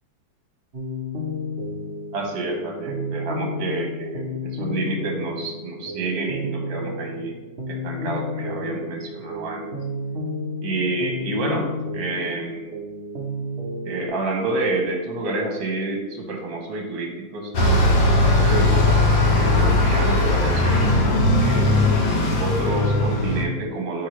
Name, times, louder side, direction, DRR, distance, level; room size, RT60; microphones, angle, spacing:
sound 1, 0.7-14.1, left 1 dB, 50° right, 0.7 m, -31 dB
voice 1, 2.1-7.4 7.7-9.7 10.6-12.7 13.8-19.0 19.3-20.8 21.4-21.9 22.4-24.1, right 2 dB, 70° right, 2 dB, 1.7 m, -28 dB
Bus, 17.5-23.4, left 2 dB, 80° left, 1.7 m, -18 dB
10.0 x 3.4 x 3.1 m, 1.1 s
omnidirectional pair, 2.1 m